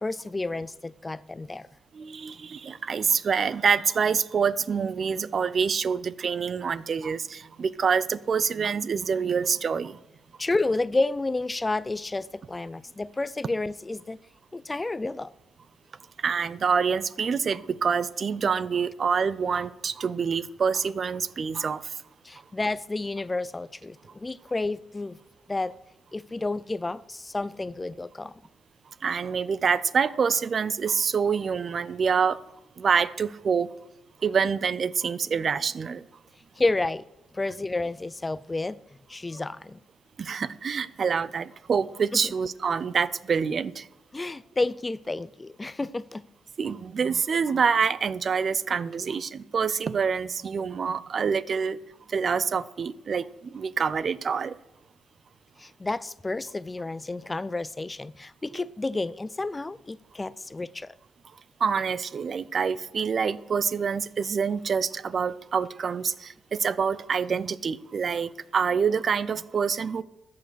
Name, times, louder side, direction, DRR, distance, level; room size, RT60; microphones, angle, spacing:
voice 1, 0.0-1.7 10.4-14.2 14.5-15.3 22.2-25.2 25.5-25.7 26.1-28.3 36.6-37.1 37.3-38.8 39.1-39.8 42.1-42.2 44.1-46.2 55.6-60.9, left 2 dB, 20° left, 0.4 m, -30 dB
voice 2, 1.9-10.0 16.2-22.0 29.0-32.4 32.8-33.7 34.2-36.0 40.2-43.9 46.6-51.8 52.1-54.6 58.5-58.6 61.6-70.0, right 6 dB, 45° right, 0.5 m, -26 dB
13.5 x 8.5 x 6.3 m
cardioid pair, 90°, 0 cm